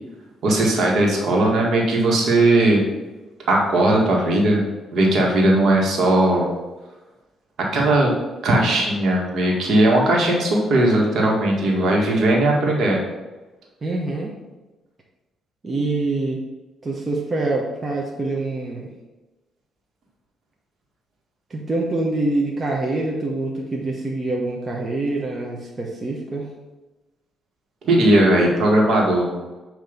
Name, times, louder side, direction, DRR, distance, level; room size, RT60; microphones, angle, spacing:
voice 1, 0.4-2.8 3.5-4.6 4.9-6.5 7.7-8.1 8.4-13.0 27.8-29.3, right 1 dB, 65° right, -1 dB, 1.8 m, -18 dB
voice 2, 13.8-14.3 15.6-16.4 16.8-18.9 21.5-26.5, right 2 dB, 30° right, -1 dB, 1.0 m, -25 dB
7.9 x 3.0 x 5.2 m, 1.2 s
cardioid pair, 90°, 0 cm